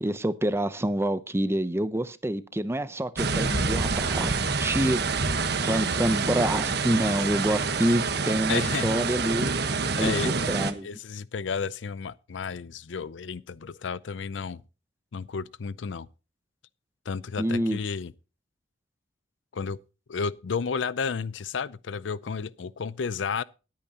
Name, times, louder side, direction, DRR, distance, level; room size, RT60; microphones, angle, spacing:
voice 1, 0.0-5.3 5.6-9.5 10.0-10.9 17.4-17.8, right 1 dB, 15° right, 0.7 m, -27 dB
sound 1, 3.2-10.7, right 4 dB, 60° right, 1.2 m, -27 dB
voice 2, 8.5-9.0 10.0-10.3 10.8-14.6 15.1-16.1 17.1-18.1 19.5-19.8 20.1-23.4, left 5 dB, 75° left, 0.5 m, -32 dB
20.0 x 8.8 x 2.9 m
head